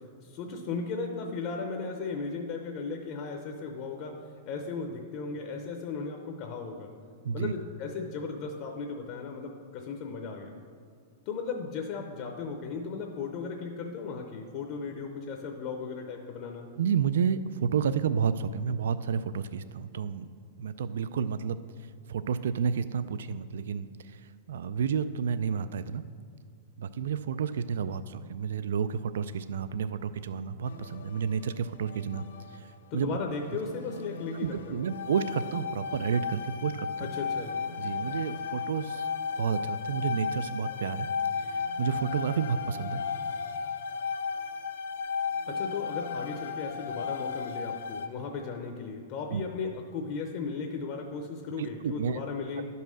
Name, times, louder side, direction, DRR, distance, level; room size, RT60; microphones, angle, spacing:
voice 1, 0.2-4.1 4.5-6.9 7.3-10.5 11.3-16.7 32.9-34.8 37.0-37.6 45.5-52.7, left 4 dB, 30° left, 3 dB, 0.6 m, -36 dB
voice 2, 16.8-20.3 20.6-21.6 22.1-26.0 26.8-32.2 32.5-33.2 34.3-37.1 37.8-39.1 39.4-41.1 41.4-43.0 49.3-49.4 51.6-52.2, right 7 dB, 70° right, 14 dB, 0.3 m, -31 dB
sound 1, 30.6-32.8 33.3-48.1, left 5 dB, 75° left, 0.8 m, -35 dB
11.5 x 5.5 x 6.2 m, 2.2 s
supercardioid pair, 180°, 0 cm